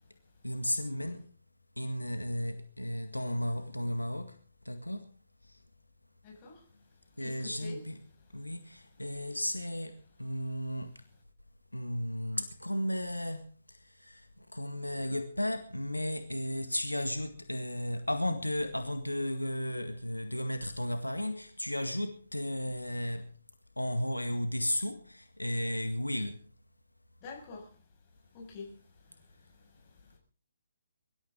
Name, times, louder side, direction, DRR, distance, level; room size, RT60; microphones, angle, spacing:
voice 1, 0.4-1.3 1.8-4.3 4.7-5.0 7.2-8.0 8.3-9.9 10.2-10.9 11.7-13.5 14.0-14.2 14.5-23.3 23.8-26.4, left 1 dB, 85° left, 1.8 m, -34 dB
voice 2, 6.2-6.6 7.2-7.8 27.2-27.8 28.3-30.2, left 3 dB, 30° left, 6.4 m, -47 dB
23.5 x 13.0 x 3.8 m
figure-of-eight pair, 135°, 0 cm